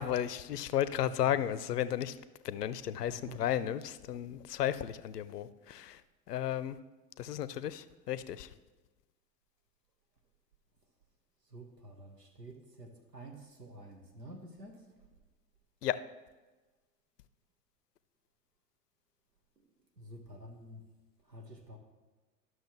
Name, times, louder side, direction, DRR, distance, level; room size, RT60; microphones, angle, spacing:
voice 1, 0.0-2.2 2.4-6.0 6.3-6.8 7.2-8.5 15.8-16.0, left 11 dB, 80° left, 15 dB, 0.5 m, -34 dB
voice 2, 1.0-1.4 3.1-3.4 11.5-14.8 20.0-20.8 21.3-21.8, right 1 dB, 90° right, 4 dB, 1.2 m, -49 dB
12.0 x 6.3 x 3.1 m, 1.2 s
figure-of-eight pair, 80°, 47 cm